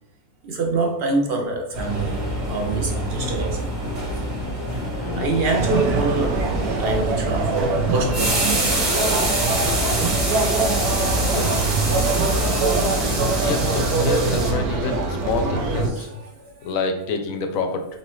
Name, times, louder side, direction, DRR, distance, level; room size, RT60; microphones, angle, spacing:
voice 1, 0.4-3.7 5.2-6.5 6.8-8.7 13.4-13.5 15.8-16.7, right 3 dB, 70° right, 0.5 m, -25 dB
sound 1, 1.7-14.5, right 1 dB, 35° right, 1.2 m, -26 dB
voice 2, 5.0-5.3 11.2-11.5 13.4-16.1 16.6-17.9, left 4 dB, 70° left, 1.0 m, -27 dB
sound 2, 5.5-15.9, right 3 dB, 90° right, 1.2 m, -23 dB
4.1 x 4.0 x 3.0 m
omnidirectional pair, 1.6 m